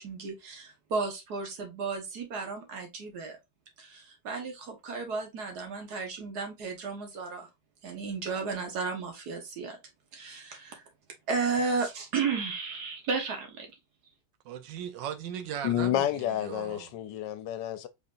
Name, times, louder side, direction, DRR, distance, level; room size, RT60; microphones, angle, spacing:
voice 1, 0.0-3.4 3.8-7.5 7.8-9.8 10.1-10.9 11.3-13.7, right 4 dB, 65° right, 1.7 m, -33 dB
voice 2, 14.4-16.1 16.4-16.9, right 9 dB, 90° right, 1.4 m, -37 dB
voice 3, 15.6-17.9, left 11 dB, 85° left, 1.3 m, -30 dB
4.3 x 3.8 x 2.5 m
omnidirectional pair, 1.9 m